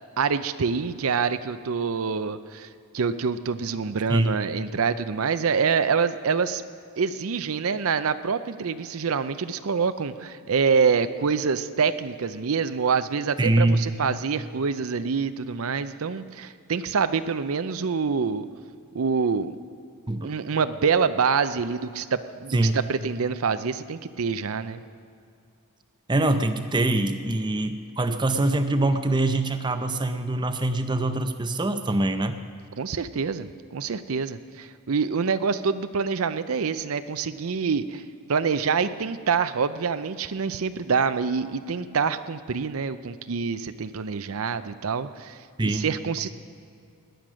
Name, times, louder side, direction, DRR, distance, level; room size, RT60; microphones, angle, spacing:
voice 1, 0.2-2.7 2.9-6.6 7.0-18.5 18.9-19.5 20.2-24.8 32.8-38.0 38.3-45.4 45.6-46.3, right 5 dB, 70° right, 12 dB, 0.5 m, -26 dB
voice 2, 13.4-13.8 20.1-20.3 22.5-22.7 26.1-32.4 45.6-45.9, right 2 dB, 20° right, 8 dB, 0.6 m, -24 dB
18.0 x 10.5 x 6.2 m, 2.3 s
head